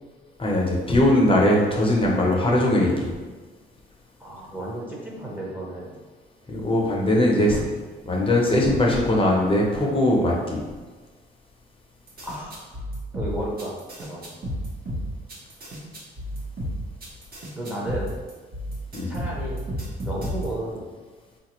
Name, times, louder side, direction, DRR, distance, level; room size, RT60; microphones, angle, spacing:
voice 1, 0.4-3.1 6.5-7.6 8.0-10.6 18.9-19.1, left 1 dB, 25° left, -2 dB, 0.8 m, -20 dB
voice 2, 4.2-5.9 12.2-12.8 13.1-14.2 17.6-18.1 19.1-19.6 20.0-20.8, right 1 dB, 10° right, -4 dB, 0.8 m, -33 dB
sound 1, 12.1-20.7, equal, 45° right, 1.0 m, -32 dB
3.8 x 2.5 x 3.0 m, 1.4 s
cardioid pair, 90°, 20 cm